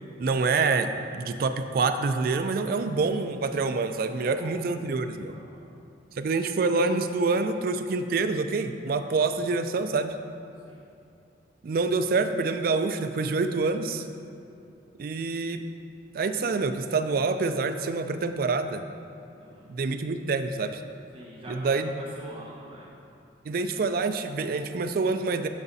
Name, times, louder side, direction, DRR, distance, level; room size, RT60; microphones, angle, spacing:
voice 1, 0.2-5.3 6.2-10.1 11.6-14.0 15.0-15.6 16.1-18.8 19.7-20.8 21.5-22.0 23.5-25.5, right 4 dB, 55° right, 8 dB, 0.3 m, -26 dB
voice 2, 4.2-4.6 5.3-5.6 10.6-10.8 14.6-14.7 19.4-19.7 21.1-21.7 22.0-22.9, equal, 30° right, -6 dB, 1.1 m, -45 dB
12.5 x 5.0 x 2.7 m, 2.7 s
head